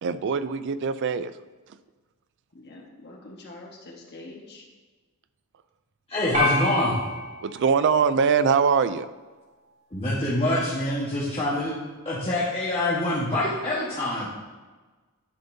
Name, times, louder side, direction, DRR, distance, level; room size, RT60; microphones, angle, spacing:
voice 1, 0.0-1.3 7.4-9.1, right 6 dB, 55° right, 13 dB, 0.3 m, -22 dB
voice 2, 2.5-4.7, left 2 dB, 50° left, 0 dB, 1.3 m, -45 dB
voice 3, 6.1-6.9 9.9-11.7 12.0-14.3, left 1 dB, 25° left, -8 dB, 1.2 m, -25 dB
sound 1, 6.3-8.8, left 2 dB, 30° right, 1.4 m, -29 dB
11.0 x 5.3 x 2.7 m, 1.3 s
head